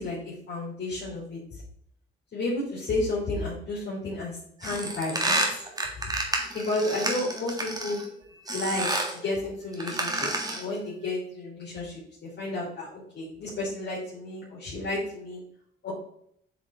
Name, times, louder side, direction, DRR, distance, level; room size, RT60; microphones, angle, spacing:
voice 1, 0.0-1.4 2.3-5.6 6.5-8.0 8.5-15.4 15.8-15.9, left 2 dB, 55° left, -6 dB, 3.0 m, -32 dB
sound 1, 4.6-8.1 8.5-9.2 9.7-10.7, right 1 dB, 20° right, 1.8 m, -29 dB
8.2 x 4.4 x 3.8 m, 0.69 s
cardioid pair, 90°, 20 cm